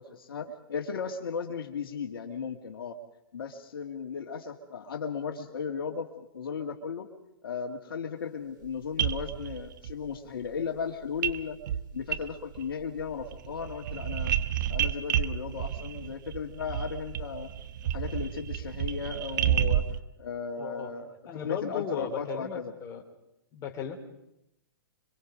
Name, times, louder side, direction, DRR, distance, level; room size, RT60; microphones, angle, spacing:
voice 1, 0.0-3.0 3.3-7.1 7.4-11.6 11.9-14.3 14.7-17.5 17.8-21.1 21.4-22.7, left 6 dB, 75° left, 3 dB, 2.1 m, -36 dB
sound 1, 8.6-8.7 9.0-9.9 11.2-11.4 11.7-12.7 13.0-20.0, right 10 dB, 55° right, 1.0 m, -30 dB
voice 2, 20.5-20.9 21.3-23.0 23.5-24.0, left 8 dB, 25° left, 2 dB, 3.4 m, -36 dB
26.5 x 24.0 x 5.1 m, 0.84 s
hypercardioid pair, 135°, 12 cm